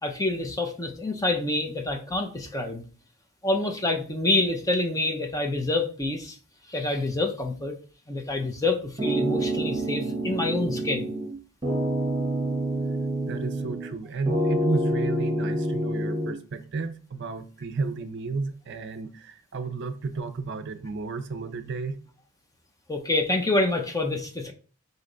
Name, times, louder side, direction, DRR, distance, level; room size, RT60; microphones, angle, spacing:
voice 1, 0.0-2.8 3.4-6.4 6.7-7.8 8.1-11.1 22.9-24.5, left 2 dB, 15° left, 3 dB, 0.6 m, -27 dB
sound 1, 9.0-11.3 11.6-14.0 14.3-16.3, right 1 dB, 25° right, 1.1 m, -27 dB
voice 2, 13.3-22.0, right 4 dB, 50° right, 9 dB, 0.5 m, -33 dB
4.0 x 3.3 x 3.8 m, 0.38 s
head